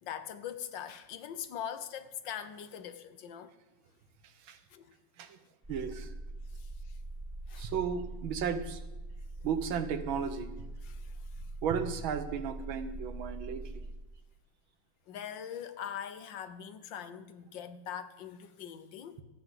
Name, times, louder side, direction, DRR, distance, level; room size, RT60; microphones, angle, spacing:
voice 1, 0.0-3.5 4.7-4.9 6.5-7.0 7.5-7.7 10.8-11.5 15.1-19.2, left 9 dB, 70° left, 1.5 m, -42 dB
sound 1, 5.6-13.9, right 2 dB, 15° right, 0.5 m, -43 dB
voice 2, 5.7-6.1 7.6-8.8 9.4-10.5 11.6-13.6, right 7 dB, 85° right, 1.9 m, -34 dB
13.5 x 9.1 x 7.8 m
omnidirectional pair, 2.1 m